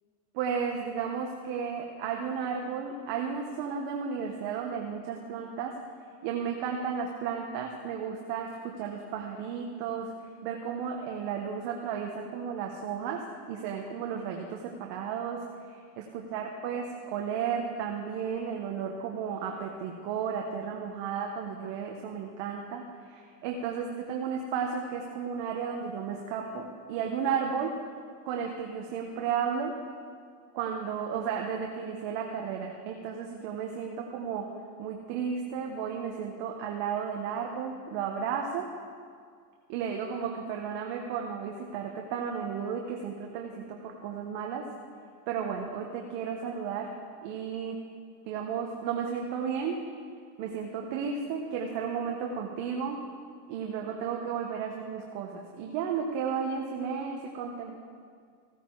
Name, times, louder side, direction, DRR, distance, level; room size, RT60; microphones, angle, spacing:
voice 1, 0.3-5.7 6.2-10.1 10.4-13.2 13.5-27.7 28.2-29.7 30.5-34.4 34.8-38.7 39.7-44.6 45.3-46.9 47.2-47.8 48.2-49.8 50.4-53.0 53.5-57.8, right 7 dB, 60° right, 1 dB, 1.4 m, -33 dB
16.5 x 9.2 x 4.8 m, 2.1 s
supercardioid pair, 110°, 49 cm